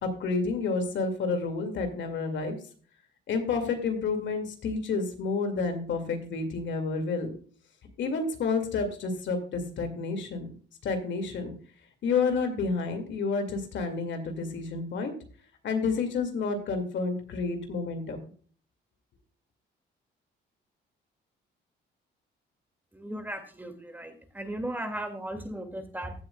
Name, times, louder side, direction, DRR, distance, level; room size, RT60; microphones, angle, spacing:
voice 1, 0.0-2.6 3.3-7.3 8.0-10.5 10.8-11.5 12.0-15.1 15.6-18.2, left 4 dB, 70° left, 6 dB, 2.2 m, -30 dB
voice 2, 22.9-26.1, right 1 dB, 10° right, 6 dB, 2.1 m, -36 dB
15.5 x 7.8 x 2.3 m, 0.43 s
cardioid pair, 90°, 20 cm